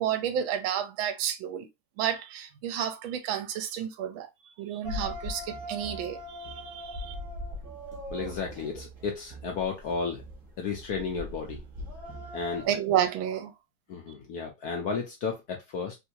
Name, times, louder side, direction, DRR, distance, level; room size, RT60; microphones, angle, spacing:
voice 1, 0.0-1.7 2.0-4.3 4.6-7.1 12.6-13.5, right 10 dB, 80° right, 1.3 m, -31 dB
sound 1, 4.8-12.7, left 1 dB, 35° right, 0.9 m, -40 dB
voice 2, 8.1-10.2 10.6-11.6 12.3-12.7 13.9-16.0, left 5 dB, 70° left, 0.9 m, -33 dB
3.4 x 2.7 x 2.7 m
omnidirectional pair, 2.2 m